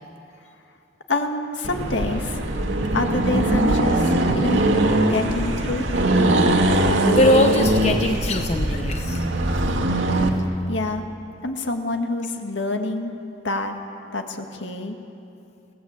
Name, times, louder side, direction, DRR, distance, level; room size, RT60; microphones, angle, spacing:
voice 1, 1.1-2.4 2.9-4.6 5.0-5.8 10.7-11.0 11.4-13.1 13.4-13.7 14.1-15.0, left 2 dB, 70° left, 4 dB, 1.9 m, -26 dB
Accelerating revving vroom, 1.6-10.4, right 1 dB, 75° right, 2.1 m, -21 dB
voice 2, 7.1-9.2, left 1 dB, 35° left, 5 dB, 0.8 m, -21 dB
26.5 x 17.0 x 8.2 m, 2.7 s
head